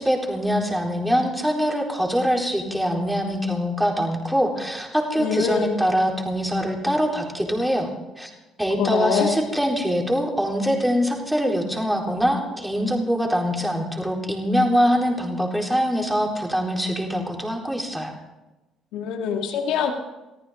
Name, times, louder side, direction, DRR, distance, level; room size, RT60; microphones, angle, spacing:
voice 1, 0.0-7.9 8.2-8.3 8.6-18.1, equal, 5° right, 0 dB, 4.1 m, -23 dB
voice 2, 5.2-5.8 8.8-9.4 18.9-19.9, left 7 dB, 75° left, 3 dB, 2.0 m, -24 dB
22.5 x 14.0 x 3.8 m, 1.1 s
supercardioid pair, 70°, 0 cm